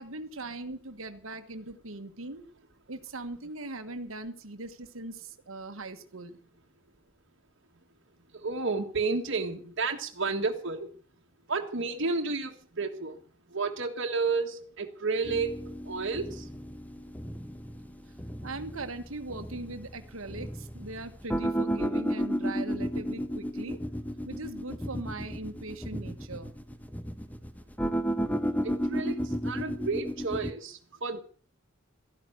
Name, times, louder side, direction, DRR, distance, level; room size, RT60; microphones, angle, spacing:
voice 1, 0.0-2.4 2.9-6.4 18.4-23.8 24.2-26.5, right 2 dB, 75° right, 1.5 m, -40 dB
voice 2, 8.3-10.9 11.5-13.2 13.5-16.5 28.6-31.2, right 4 dB, 60° right, 1.7 m, -31 dB
sound 1, 15.2-30.5, equal, 5° left, 0.8 m, -33 dB
14.5 x 11.5 x 7.9 m
head